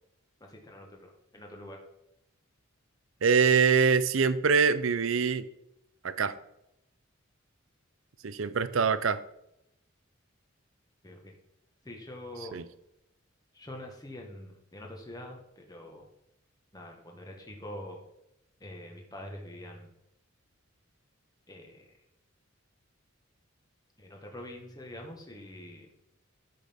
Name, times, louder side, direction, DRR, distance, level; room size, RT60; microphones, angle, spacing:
voice 1, 0.4-1.8 11.0-11.3 11.8-12.6 13.5-16.1 16.7-18.0 18.6-19.9 21.5-21.9 24.0-25.9, left 1 dB, 20° left, 1 dB, 1.4 m, -45 dB
voice 2, 3.2-5.5 6.0-6.3 8.2-9.2 12.5-12.6, right 5 dB, 70° right, 13 dB, 0.6 m, -24 dB
13.5 x 5.9 x 3.6 m, 0.84 s
head